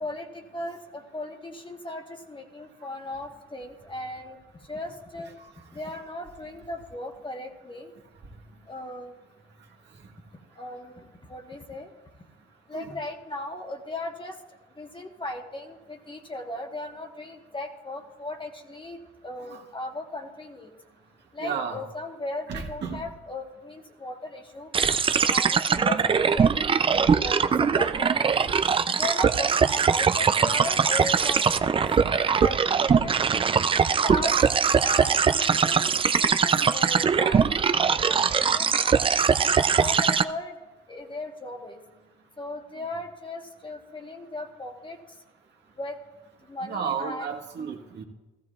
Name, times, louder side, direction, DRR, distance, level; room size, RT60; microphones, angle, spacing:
voice 1, 0.0-2.0 2.3-4.4 4.7-5.3 5.7-7.9 8.7-9.1 10.6-11.9 12.7-14.3 14.8-19.0 19.2-20.7 21.3-24.7 25.3-28.5 29.0-33.1 34.0-34.3 34.8-37.5 37.7-38.7 39.4-40.5 40.9-41.8 42.4-45.0 45.8-45.9 46.5-47.4, left 2 dB, 25° left, 3 dB, 1.2 m, -37 dB
voice 2, 21.4-21.8 22.5-23.0 24.8-24.9 26.9-27.0 36.6-36.7 46.6-48.0, right 6 dB, 60° right, 1 dB, 1.5 m, -33 dB
sound 1, 24.7-40.2, right 6 dB, 25° right, 0.4 m, -22 dB
15.0 x 14.0 x 2.4 m, 1.2 s
cardioid pair, 90°, 20 cm